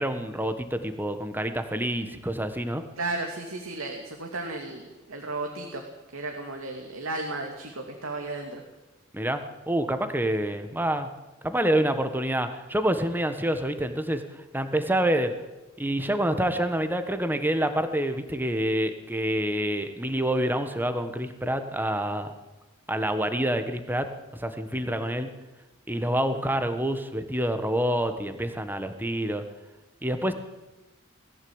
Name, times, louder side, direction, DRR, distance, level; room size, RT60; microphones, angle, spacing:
voice 1, 0.0-2.8 9.1-11.1 11.4-15.3 15.8-22.3 22.9-25.3 25.9-29.4 30.0-30.3, right 1 dB, 10° right, 8 dB, 1.5 m, -27 dB
voice 2, 3.0-5.8 6.1-8.6, right 2 dB, 85° right, 2 dB, 2.7 m, -34 dB
20.5 x 15.0 x 8.9 m, 1.1 s
head